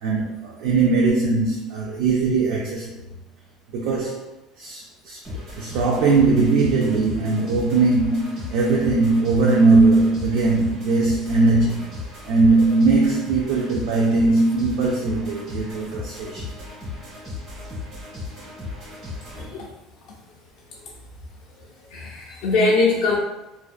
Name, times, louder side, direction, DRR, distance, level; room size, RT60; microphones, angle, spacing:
voice 1, 0.0-2.9 3.7-4.2 4.6-5.2 5.6-11.9 12.3-16.4, right 3 dB, 65° right, -2 dB, 0.4 m, -19 dB
sound 1, 5.2-19.5, left 3 dB, 40° right, 1.3 m, -36 dB
voice 2, 21.9-23.2, left 3 dB, 60° left, -3 dB, 0.4 m, -21 dB
2.5 x 2.1 x 2.3 m, 0.95 s
cardioid pair, 160°, 0 cm